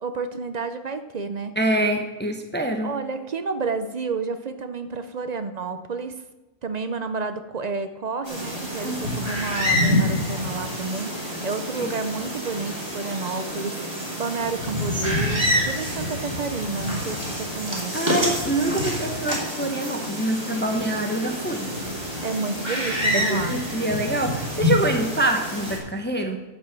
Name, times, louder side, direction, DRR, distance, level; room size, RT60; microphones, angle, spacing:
voice 1, 0.0-1.5 2.8-6.1 6.6-18.0 22.2-23.6, right 4 dB, 45° right, 9 dB, 0.5 m, -30 dB
voice 2, 1.6-2.9 8.8-9.2 11.8-11.9 17.9-21.7 23.1-26.4, right 1 dB, 10° left, 4 dB, 0.8 m, -25 dB
sound 1, 8.2-25.8, equal, 20° right, 3.0 m, -27 dB
10.5 x 5.5 x 7.4 m, 1.1 s
omnidirectional pair, 1.4 m